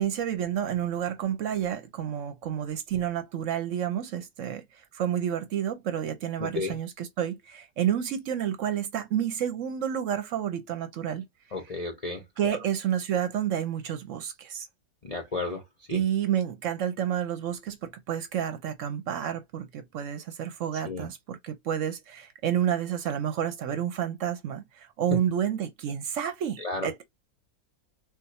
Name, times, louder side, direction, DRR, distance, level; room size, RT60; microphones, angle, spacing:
voice 1, 0.0-4.6 4.9-11.3 12.4-14.7 15.9-27.0, right 9 dB, 65° right, 0.9 m, -30 dB
voice 2, 6.4-6.8 11.5-12.6 15.0-16.0 20.7-21.1 26.6-27.0, left 3 dB, 45° left, 0.5 m, -34 dB
2.5 x 2.3 x 4.0 m
omnidirectional pair, 1.5 m